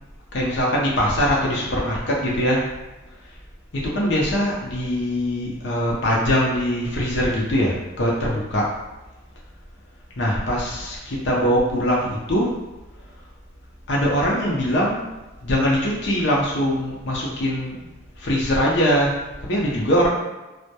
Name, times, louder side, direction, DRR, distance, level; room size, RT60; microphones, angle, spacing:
voice 1, 0.3-2.7 3.7-8.7 10.2-12.5 13.9-15.0 15.4-17.7 18.2-19.1 19.4-20.1, equal, 65° left, -4 dB, 0.5 m, -22 dB
2.2 x 2.1 x 2.8 m, 1.1 s
head